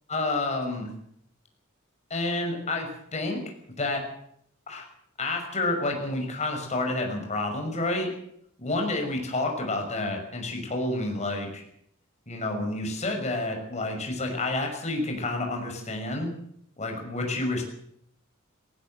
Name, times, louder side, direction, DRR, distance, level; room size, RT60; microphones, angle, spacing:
voice 1, 0.1-0.9 2.1-3.4 3.8-4.0 4.7-4.8 5.2-8.1 8.6-11.6 12.3-16.3 16.8-17.6, left 2 dB, 35° left, 2 dB, 6.1 m, -29 dB
18.5 x 18.5 x 7.9 m, 0.70 s
head